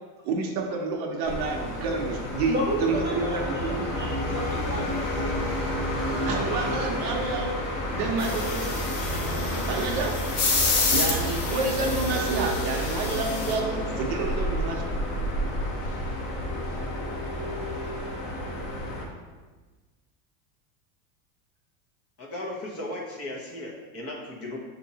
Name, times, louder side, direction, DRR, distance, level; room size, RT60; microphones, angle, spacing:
voice 1, 0.2-2.5 2.8-4.0 6.3-7.6 7.9-8.7 9.7-10.2 10.9-14.9, right 4 dB, 50° right, 2 dB, 0.8 m, -29 dB
sound 1, 1.2-19.0, equal, 50° left, 1.2 m, -30 dB
voice 2, 2.5-5.4, right 1 dB, 25° right, -4 dB, 0.6 m, -33 dB
sound 2, 8.2-13.5, left 3 dB, 75° left, 1.3 m, -29 dB
voice 3, 22.2-24.6, left 1 dB, 30° left, -2 dB, 1.0 m, -36 dB
7.0 x 2.7 x 2.8 m, 1.3 s
supercardioid pair, 115°, 47 cm